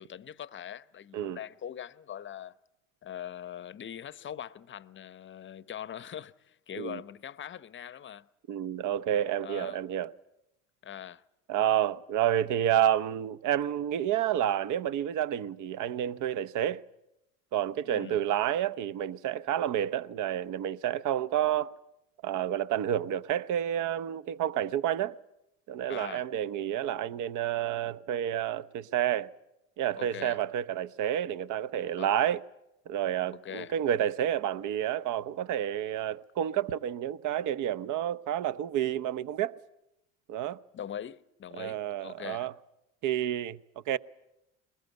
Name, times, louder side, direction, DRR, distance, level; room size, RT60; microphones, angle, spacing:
voice 1, 0.0-2.5 3.0-8.3 9.4-9.8 10.8-11.2 17.8-18.2 25.9-26.3 29.9-30.4 32.0-32.1 33.3-33.7 40.7-42.5, left 9 dB, 30° left, 0.8 m, -42 dB
voice 2, 8.5-10.1 11.5-16.8 17.5-21.7 22.2-25.2 25.7-29.3 29.8-32.4 32.9-39.6 40.3-40.6 41.6-42.5 43.0-43.6 43.9-44.0, right 11 dB, 50° right, 0.9 m, -29 dB
22.0 x 20.5 x 9.3 m
hypercardioid pair, 75°, 40 cm